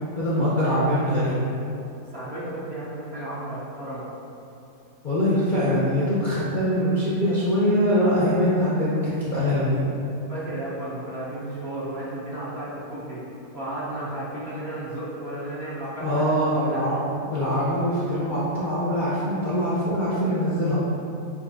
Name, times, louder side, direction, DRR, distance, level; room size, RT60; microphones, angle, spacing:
voice 1, 0.1-1.4 5.0-9.8 16.0-20.9, equal, 45° left, -10 dB, 0.6 m, -23 dB
voice 2, 2.1-4.1 10.3-13.2 13.5-16.8, right 1 dB, 45° right, -9 dB, 1.0 m, -33 dB
6.6 x 2.8 x 2.7 m, 2.7 s
omnidirectional pair, 1.8 m